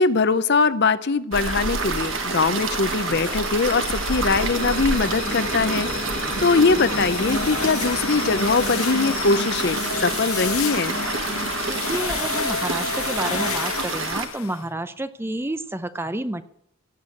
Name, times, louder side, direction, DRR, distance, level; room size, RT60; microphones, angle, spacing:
voice 1, 0.0-11.0, left 4 dB, 50° left, 14 dB, 0.6 m, -22 dB
sound 1, 1.3-14.3, right 4 dB, 60° right, 1.5 m, -28 dB
sound 2, 1.4-14.6, left 7 dB, 75° left, 0.9 m, -31 dB
sound 3, 3.3-13.1, left 1 dB, 35° left, 1.3 m, -34 dB
voice 2, 11.6-16.4, right 1 dB, 10° right, 12 dB, 0.5 m, -30 dB
17.0 x 8.1 x 7.3 m, 0.79 s
head